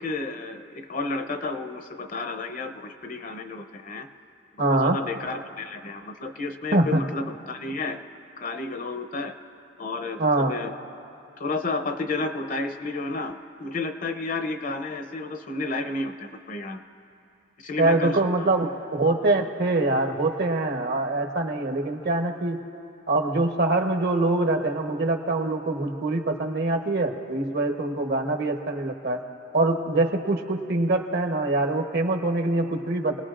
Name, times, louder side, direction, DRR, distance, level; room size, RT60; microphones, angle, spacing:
voice 1, 0.0-4.1 4.7-8.0 8.4-9.3 9.8-10.7 11.4-16.8 17.6-18.5, left 3 dB, 45° left, 7 dB, 0.7 m, -31 dB
voice 2, 4.6-5.0 6.7-7.0 10.2-10.5 17.8-22.6 23.1-29.2 29.5-33.2, right 2 dB, 60° right, 4 dB, 1.1 m, -24 dB
26.5 x 19.0 x 2.5 m, 2.6 s
head